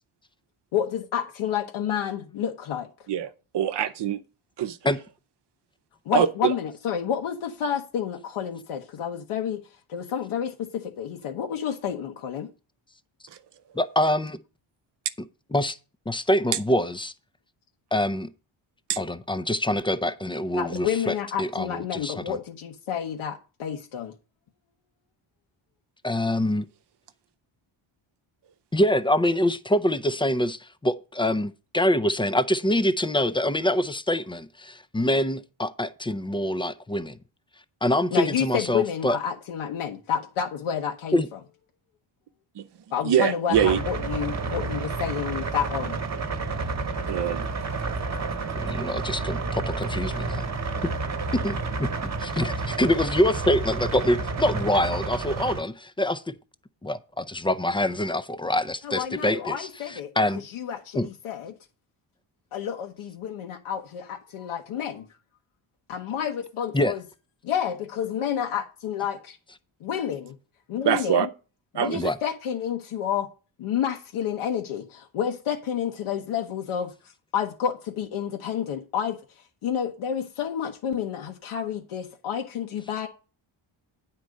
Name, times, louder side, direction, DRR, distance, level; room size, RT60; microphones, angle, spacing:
voice 1, 0.7-2.9 6.0-9.6 9.9-12.5 20.5-24.1 38.1-41.4 42.9-46.0 58.8-60.1 60.4-61.5 62.5-65.1 65.9-67.0 67.4-69.4 69.8-70.4 70.7-71.3 71.7-73.3 73.6-76.9 77.3-79.2 79.6-83.1, left 8 dB, 85° left, 1.2 m, -29 dB
voice 2, 3.5-4.2 4.6-4.8 6.1-6.5 18.9-19.0 42.6-42.7 43.0-43.8 47.1-47.5 70.8-71.3 71.7-72.1, right 9 dB, 55° right, 0.8 m, -23 dB
voice 3, 13.7-14.4 15.5-15.8 16.1-17.1 17.9-18.3 19.0-22.4 26.0-26.7 28.7-37.2 37.8-39.2 41.1-41.3 48.5-50.5 50.8-50.9 51.3-51.6 52.2-56.3 56.8-60.4 60.9-61.1 66.7-66.9 71.9-72.2, left 1 dB, 10° left, 0.4 m, -25 dB
sound 1, 43.5-55.6, right 3 dB, 35° right, 1.2 m, -30 dB
9.5 x 4.4 x 6.4 m
wide cardioid pair, 155°, 48 cm